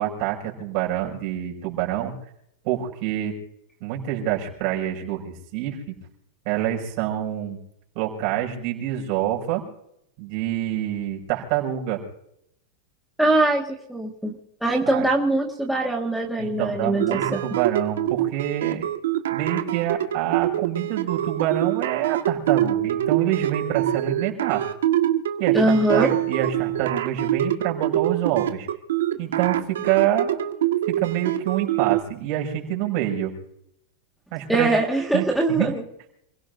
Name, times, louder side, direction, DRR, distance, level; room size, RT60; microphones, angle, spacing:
voice 1, 0.0-2.1 2.6-3.3 3.8-5.9 6.4-7.6 7.9-9.6 10.2-12.0 14.9-15.0 16.4-18.9 19.3-24.6 25.4-28.7 29.2-30.5 30.9-33.3 34.3-34.7 35.1-35.7, right 12 dB, 45° right, -1 dB, 6.0 m, -26 dB
voice 2, 13.2-14.3 14.6-17.4 25.5-26.1 34.5-35.8, right 2 dB, ahead, -2 dB, 1.8 m, -22 dB
sound 1, 17.0-32.0, right 12 dB, 90° right, 1.7 m, -24 dB
29.0 x 17.0 x 2.7 m, 0.77 s
supercardioid pair, 150°, 0 cm